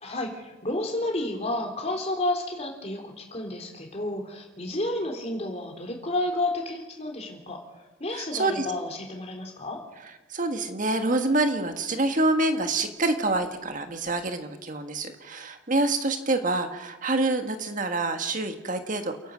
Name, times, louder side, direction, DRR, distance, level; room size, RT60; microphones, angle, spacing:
voice 1, 0.0-7.6 8.0-9.8, left 1 dB, 35° left, 2 dB, 3.5 m, -31 dB
voice 2, 8.1-8.7 10.3-19.3, right 2 dB, 45° right, 7 dB, 1.6 m, -26 dB
28.5 x 11.5 x 7.9 m, 1.1 s
head